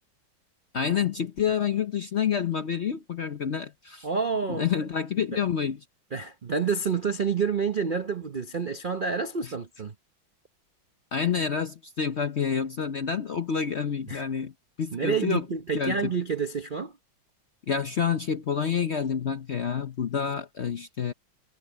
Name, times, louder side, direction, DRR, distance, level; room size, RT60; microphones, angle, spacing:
voice 1, 0.7-4.1 4.5-5.8 9.4-9.5 11.1-14.5 14.8-15.5 15.7-16.1 17.7-21.1, left 7 dB, 55° left, 0.8 m, -28 dB
voice 2, 4.0-4.7 5.3-5.4 6.1-9.9 14.1-14.2 14.9-16.9, right 5 dB, 50° right, 0.6 m, -28 dB
omnidirectional pair, 2.0 m